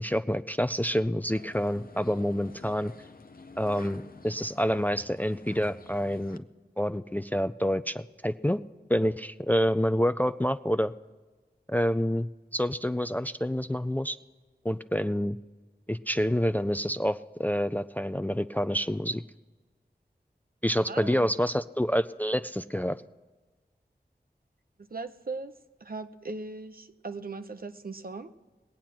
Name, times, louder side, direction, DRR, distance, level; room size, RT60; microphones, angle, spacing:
voice 1, 0.0-2.9 3.6-6.4 6.8-8.6 8.9-10.9 11.7-14.2 14.6-15.4 15.9-19.2 20.6-23.0, equal, 10° left, 11 dB, 0.4 m, -28 dB
sound 1, 1.3-6.4, left 3 dB, 55° left, 0.7 m, -50 dB
voice 2, 20.9-21.3 24.9-25.5 25.8-28.3, right 3 dB, 60° right, 9 dB, 0.8 m, -38 dB
20.5 x 8.8 x 6.0 m, 1.3 s
wide cardioid pair, 70°, 17 cm